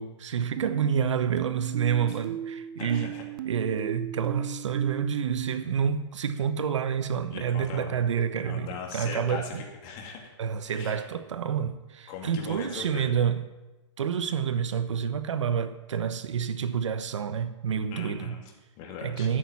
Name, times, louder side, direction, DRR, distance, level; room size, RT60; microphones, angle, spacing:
voice 1, 0.0-3.2 3.4-9.6 10.4-13.4 14.0-18.4 19.0-19.4, right 7 dB, 75° right, 1.1 m, -28 dB
sound 1, 0.6-5.6, right 12 dB, 40° right, 0.6 m, -36 dB
voice 2, 2.8-3.2 7.3-8.0 8.4-9.5 9.8-10.2 10.6-11.0 12.1-13.1 17.9-19.3, left 5 dB, 35° left, 2.6 m, -39 dB
11.0 x 8.8 x 7.3 m
hypercardioid pair, 140°, 16 cm